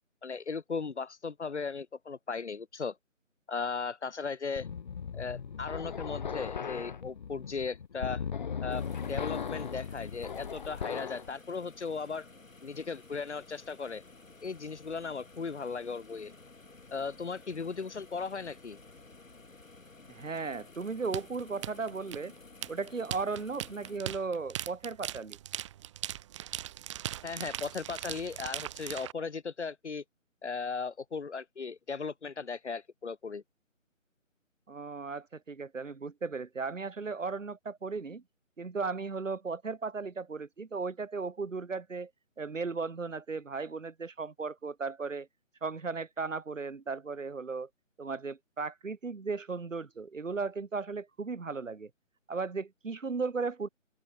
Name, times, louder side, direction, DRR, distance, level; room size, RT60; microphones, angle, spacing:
voice 1, 0.2-3.0 3.5-4.7 5.1-8.2 8.6-12.3 12.6-14.0 14.4-16.4 16.9-18.8 27.2-30.0 30.4-33.4, left 5 dB, 55° left, 3.5 m, -37 dB
sound 1, 4.6-11.3, left 6 dB, 35° left, 1.8 m, -37 dB
sound 2, 8.7-24.0, left 3 dB, 75° left, 7.6 m, -54 dB
voice 2, 20.1-22.3 22.7-25.4 34.7-38.2 38.6-42.1 42.4-45.3 45.6-47.7 48.0-51.9 52.3-53.7, right 4 dB, 70° right, 2.6 m, -36 dB
sound 3, 21.1-29.1, right 12 dB, 20° right, 3.6 m, -39 dB
open air
figure-of-eight pair, 155°, 40 cm